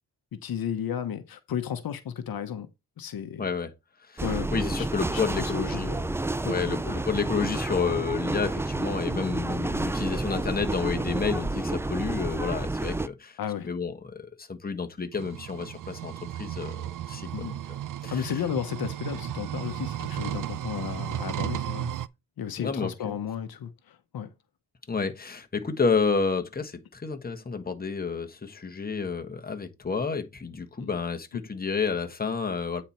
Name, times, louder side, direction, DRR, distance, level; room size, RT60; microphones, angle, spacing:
voice 1, 0.4-2.7 3.0-3.4 4.2-5.9 6.4-6.5 13.4-13.7 17.3-17.5 18.1-22.0 22.4-24.3 30.8-30.9, left 8 dB, 70° left, 1.0 m, -33 dB
voice 2, 3.4-3.7 4.0-4.2 4.5-6.1 6.4-13.4 13.6-17.6 18.0-18.3 22.6-23.2 24.9-32.8, left 5 dB, 25° left, 1.3 m, -30 dB
sound 1, 4.2-13.1, right 2 dB, 10° right, 0.3 m, -30 dB
sound 2, 15.1-22.1, right 11 dB, 60° right, 0.5 m, -34 dB
9.0 x 4.3 x 4.3 m
cardioid pair, 85°, 37 cm